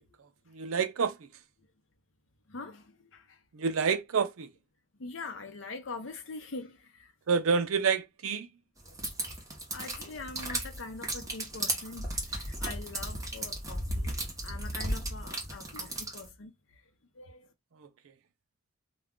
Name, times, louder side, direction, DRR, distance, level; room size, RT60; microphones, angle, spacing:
voice 1, 0.5-1.1 3.5-4.5 7.3-8.5 17.8-17.9, right 5 dB, 80° right, 0.5 m, -28 dB
voice 2, 2.5-3.4 5.0-7.1 8.9-9.0 9.7-14.1 14.4-16.5 17.2-17.5, left 3 dB, 65° left, 0.7 m, -43 dB
sound 1, 8.9-16.3, right 1 dB, 15° right, 0.8 m, -35 dB
2.4 x 2.2 x 3.6 m
head